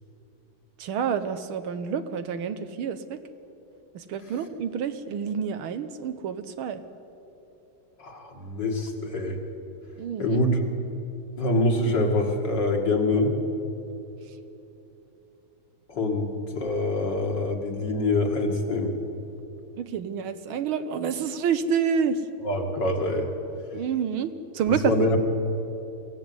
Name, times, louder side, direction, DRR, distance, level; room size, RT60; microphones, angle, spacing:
voice 1, 0.8-3.2 4.0-6.8 10.0-10.4 19.8-22.2 23.7-25.2, right 7 dB, 75° right, 10 dB, 1.7 m, -28 dB
voice 2, 8.0-9.4 10.2-10.6 11.4-13.4 15.9-18.9 22.4-23.3 24.7-25.2, left 2 dB, 55° left, 2 dB, 2.8 m, -25 dB
22.5 x 16.0 x 9.6 m, 3.0 s
omnidirectional pair, 2.4 m